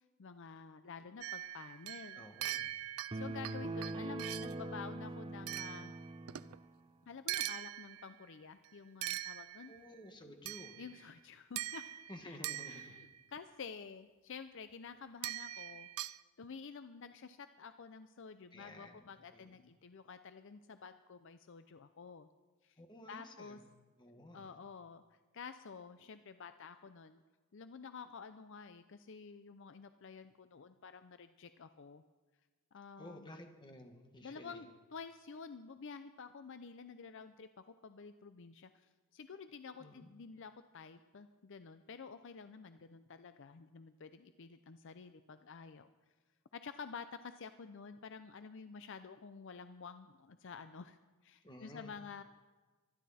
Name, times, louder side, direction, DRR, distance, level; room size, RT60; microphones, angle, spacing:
voice 1, 0.2-2.2 3.1-5.9 7.1-9.7 10.8-11.9 12.2-12.4 12.7-15.9 16.4-22.3 22.6-22.8 23.1-23.6 24.3-27.2 27.5-32.0 32.7-33.3 34.2-45.9 46.5-51.0 51.2-52.2, left 5 dB, 55° left, 10 dB, 0.5 m, -50 dB
sound 1, 1.2-4.6 5.5-6.6 7.3-8.2 9.0-9.9 10.5-11.1 11.6-13.2 15.2-16.2, right 13 dB, 70° right, 0.4 m, -42 dB
voice 2, 2.1-2.7 9.7-10.8 12.1-12.9 18.5-19.0 19.3-19.6 22.8-23.6 24.0-24.5 33.0-34.6 39.8-40.1 51.4-52.0, left 1 dB, 20° left, 4 dB, 1.7 m, -53 dB
sound 2, 3.1-6.6, right 2 dB, 20° right, 0.5 m, -42 dB
23.5 x 11.5 x 4.2 m, 1.3 s
head